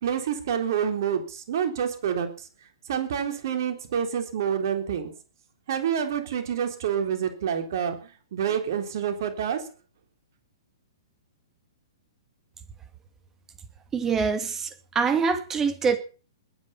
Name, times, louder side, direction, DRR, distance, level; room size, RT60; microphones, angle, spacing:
voice 1, 0.0-2.5 2.9-5.1 5.7-9.7, right 8 dB, 50° right, 6 dB, 3.7 m, -28 dB
voice 2, 13.9-16.0, right 5 dB, 15° right, 10 dB, 2.5 m, -25 dB
20.5 x 9.6 x 5.7 m, 0.37 s
figure-of-eight pair, 115°, 2 cm